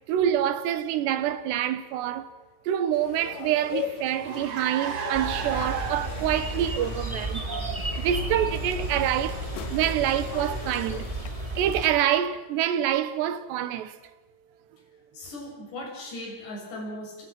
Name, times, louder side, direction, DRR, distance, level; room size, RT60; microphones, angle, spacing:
voice 1, 0.0-2.3 2.7-9.4 9.7-11.1 11.5-14.1, right 10 dB, 85° right, 3.5 m, -26 dB
sound 1, 2.9-11.3, left 10 dB, 65° left, 2.5 m, -40 dB
Car, 3.1-10.9, right 8 dB, 60° right, 1.6 m, -38 dB
sound 2, 5.1-11.9, right 1 dB, 10° right, 3.2 m, -33 dB
voice 2, 15.1-17.3, left 1 dB, 85° left, 9.2 m, -38 dB
30.0 x 29.0 x 6.1 m
omnidirectional pair, 4.8 m